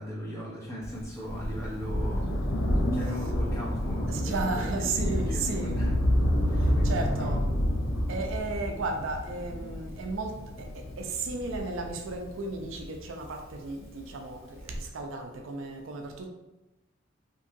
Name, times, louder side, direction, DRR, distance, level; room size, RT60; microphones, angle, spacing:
voice 1, 0.0-2.4 2.9-6.2 6.5-7.5, equal, 15° left, -6 dB, 0.8 m, -38 dB
Thunder, 0.8-13.7 14.6-14.7, equal, 90° left, 0.5 m, -29 dB
voice 2, 4.1-5.8 6.6-7.4 8.1-16.3, right 3 dB, 70° right, 3 dB, 0.4 m, -34 dB
2.9 x 2.7 x 2.5 m, 0.99 s
head